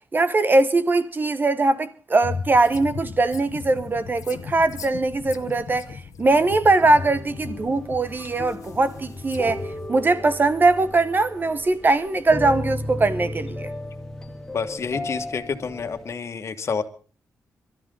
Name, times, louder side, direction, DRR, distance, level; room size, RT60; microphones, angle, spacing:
voice 1, 0.1-9.6 9.9-13.7, right 2 dB, 35° right, 1.0 m, -21 dB
sound 1, 2.2-9.9, left 5 dB, 75° left, 1.1 m, -37 dB
sound 2, 6.8-16.1, left 1 dB, 10° left, 2.3 m, -35 dB
voice 2, 14.5-16.8, left 5 dB, 55° left, 1.7 m, -28 dB
24.5 x 13.0 x 3.9 m
cardioid pair, 80°, 6 cm